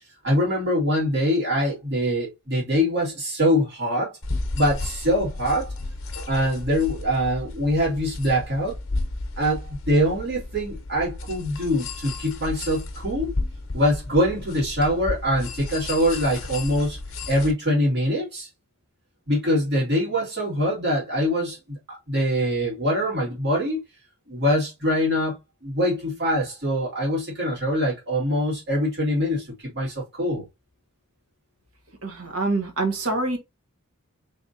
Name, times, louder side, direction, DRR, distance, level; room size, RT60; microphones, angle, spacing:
voice 1, 0.2-4.1 4.5-5.7 6.3-8.8 9.4-13.3 13.7-17.0 17.3-18.5 19.3-23.8 24.3-25.4 25.6-29.5 29.7-30.4, equal, 50° right, 2.1 m, -23 dB
sound 1, 4.2-17.5, left 2 dB, 65° left, 0.8 m, -33 dB
voice 2, 32.0-33.4, right 2 dB, 80° right, 1.2 m, -25 dB
3.9 x 3.4 x 2.6 m
head